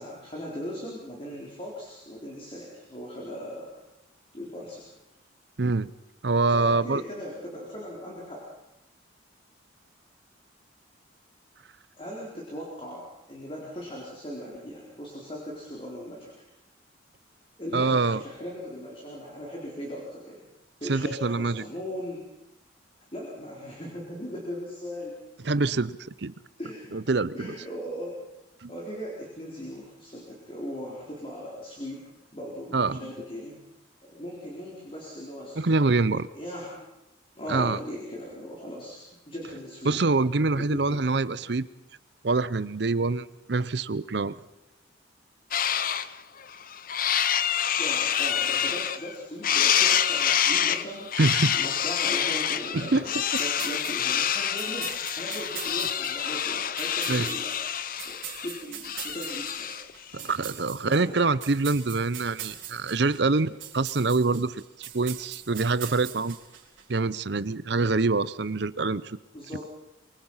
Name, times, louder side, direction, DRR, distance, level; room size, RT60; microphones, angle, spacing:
voice 1, 0.0-3.8 4.3-4.8 6.5-8.5 12.0-16.5 17.6-20.5 20.8-22.2 23.1-25.1 26.6-27.0 27.3-28.1 28.7-32.0 32.3-33.6 34.1-35.6 36.3-36.9 37.3-40.0 40.5-41.0 47.8-51.1 51.5-59.7 60.1-60.2 60.8-61.3 69.3-69.7, equal, 30° left, -3 dB, 4.3 m, -38 dB
voice 2, 5.6-5.9 6.2-7.0 17.7-18.2 20.9-21.6 25.4-26.3 26.9-27.5 28.6-28.7 32.7-33.0 35.6-36.3 37.5-37.8 39.9-41.7 42.2-44.3 51.2-51.6 52.7-53.0 57.1-57.3 60.1-66.4 66.9-69.2, right 3 dB, 60° right, 17 dB, 0.7 m, -25 dB
Corellas screeching, 45.5-46.1 46.5-49.1 49.4-59.9, left 9 dB, 45° left, 0.7 m, -27 dB
sound 1, 53.3-66.8, right 10 dB, 85° right, 3.9 m, -42 dB
25.0 x 23.5 x 5.7 m, 0.89 s
head